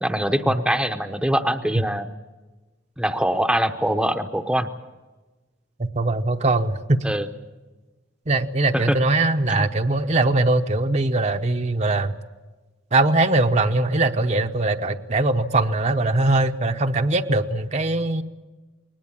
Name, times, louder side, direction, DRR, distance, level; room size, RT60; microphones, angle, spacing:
voice 1, 0.0-2.1 3.0-4.7 7.0-7.3 8.7-8.8 9.5-9.7, right 1 dB, 5° right, 6 dB, 0.8 m, -23 dB
voice 2, 5.8-7.0 8.3-12.1 12.9-18.2, right 2 dB, 35° right, 6 dB, 0.8 m, -21 dB
21.0 x 19.5 x 8.9 m, 1.2 s
head